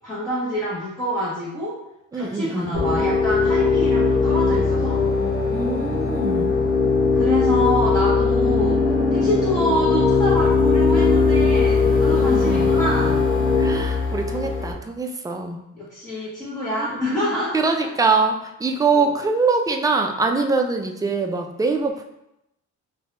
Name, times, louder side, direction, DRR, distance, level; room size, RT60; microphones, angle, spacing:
voice 1, 0.0-1.7 2.1-5.0 7.1-8.8 9.1-13.2 15.7-17.6 17.8-17.9 18.9-19.1, equal, 10° left, -10 dB, 1.2 m, -26 dB
voice 2, 2.1-2.9 5.5-6.5 12.1-12.7 13.6-15.6 16.8-16.9 17.5-22.0, right 4 dB, 10° right, 4 dB, 0.3 m, -23 dB
sound 1, 2.7-14.7, left 4 dB, 40° left, 0.9 m, -19 dB
2.7 x 2.7 x 3.2 m, 0.84 s
cardioid pair, 90°, 30 cm